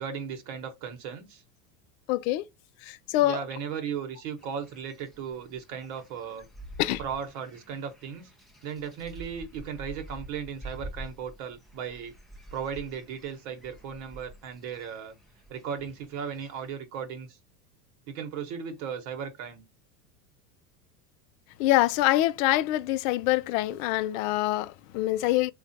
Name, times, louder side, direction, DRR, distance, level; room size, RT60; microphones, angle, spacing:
voice 1, 0.0-1.4 3.1-6.4 7.0-8.3 8.6-12.1 12.5-15.1 15.5-17.3 18.1-19.6, right 7 dB, 60° right, 1.1 m, -36 dB
voice 2, 2.1-2.4 2.9-3.4 6.8-7.0 21.6-25.5, left 16 dB, 60° left, 0.5 m, -25 dB
sound 1, 4.4-16.7, right 1 dB, ahead, 0.4 m, -47 dB
3.2 x 2.4 x 2.6 m
supercardioid pair, 110°, 47 cm